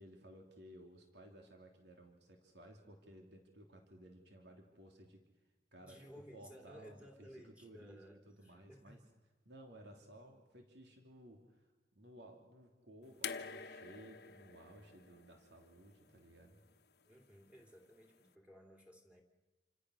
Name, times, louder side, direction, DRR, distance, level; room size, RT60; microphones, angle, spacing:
voice 1, 0.0-5.2 5.7-7.3 7.6-9.0 9.4-16.6, right 1 dB, 70° right, 3 dB, 3.2 m, -58 dB
voice 2, 5.8-9.0 17.0-19.2, equal, 5° right, 2 dB, 3.1 m, -57 dB
sound 1, 13.2-16.4 17.6-17.7, left 6 dB, 65° left, 1.2 m, -47 dB
28.5 x 26.0 x 6.5 m, 1.3 s
head